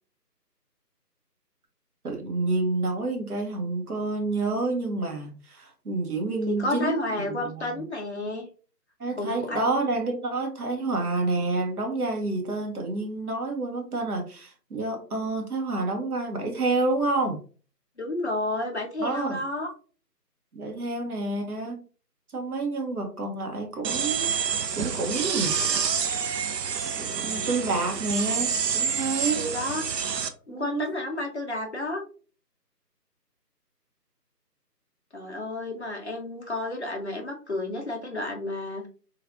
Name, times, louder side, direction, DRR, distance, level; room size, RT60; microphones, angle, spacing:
voice 1, 2.0-7.8 9.0-17.4 19.0-19.4 20.5-21.8 22.3-24.3 24.7-25.6 27.0-29.4 30.5-30.9, right 3 dB, 60° right, 2 dB, 1.1 m, -29 dB
voice 2, 6.5-8.5 9.2-9.7 18.0-19.7 26.9-27.5 29.4-29.8 30.5-32.0 35.1-38.8, left 2 dB, 45° left, 1 dB, 0.6 m, -31 dB
sound 1, 23.8-30.3, right 6 dB, 75° right, 0.6 m, -28 dB
3.2 x 2.4 x 2.4 m, 0.38 s
figure-of-eight pair, 165°, 49 cm